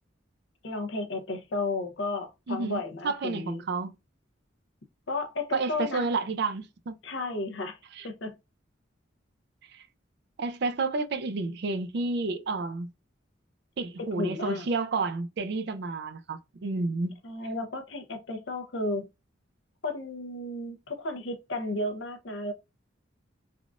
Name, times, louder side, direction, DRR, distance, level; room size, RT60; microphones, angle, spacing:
voice 1, 0.6-3.6 5.1-6.1 7.0-7.8 8.0-8.4 14.0-14.7 17.2-19.1 19.8-22.5, left 2 dB, 70° left, 0.7 m, -33 dB
voice 2, 2.5-3.9 5.5-7.0 7.9-8.1 9.7-9.9 10.4-12.9 13.8-17.2, right 3 dB, 60° right, 0.4 m, -30 dB
3.5 x 2.4 x 2.4 m
head